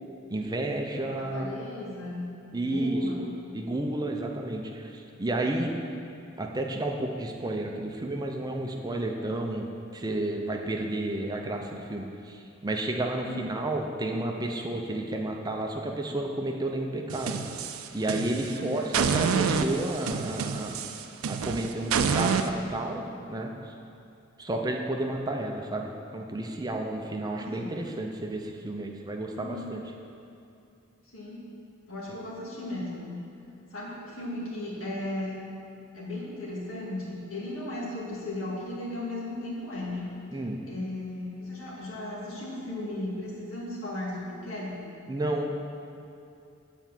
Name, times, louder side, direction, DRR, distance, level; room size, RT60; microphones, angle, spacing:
voice 1, 0.3-1.5 2.5-3.1 3.5-5.7 6.4-17.6 17.9-20.8 21.3-23.7 24.4-29.8 40.3-40.6 45.1-45.5, right 1 dB, 20° right, 2 dB, 0.5 m, -31 dB
voice 2, 1.2-2.3 2.6-3.2 13.1-13.5 18.5-18.9 27.2-27.8 29.3-29.8 31.1-31.5 31.9-33.1 33.7-35.4 35.9-40.2 40.7-44.8, left 1 dB, 80° left, -5 dB, 2.0 m, -36 dB
sound 1, 17.1-18.5 18.9-22.5, right 6 dB, 85° right, 0.4 m, -28 dB
8.0 x 4.5 x 7.2 m, 2.6 s
head